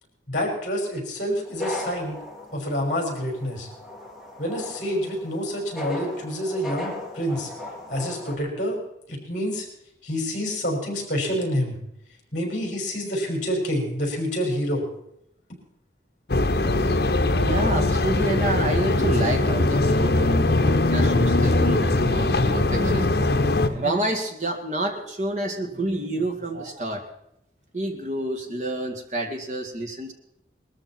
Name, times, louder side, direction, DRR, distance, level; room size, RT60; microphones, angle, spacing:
voice 1, 0.3-2.2 2.5-3.7 4.4-7.5 7.9-8.8 9.1-9.7 10.0-11.8 12.3-14.8, equal, 45° left, 1 dB, 5.4 m, -27 dB
sound 1, 1.5-8.4, left 2 dB, ahead, 2.3 m, -37 dB
sound 2, 16.3-23.7, left 2 dB, 65° left, 1.0 m, -21 dB
voice 2, 17.3-27.1 27.7-30.1, right 1 dB, 40° right, 2 dB, 2.1 m, -29 dB
20.5 x 13.5 x 4.4 m, 0.77 s
head